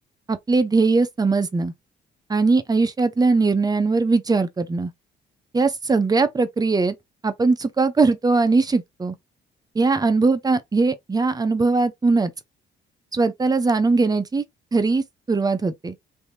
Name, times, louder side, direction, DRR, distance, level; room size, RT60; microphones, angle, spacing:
voice 1, 0.3-1.7 2.3-4.9 5.5-6.9 7.2-9.1 9.8-12.3 13.1-14.4 14.7-15.9, right 3 dB, 20° right, 0.7 m, -20 dB
3.4 x 2.8 x 2.7 m
cardioid pair, 90°, 20 cm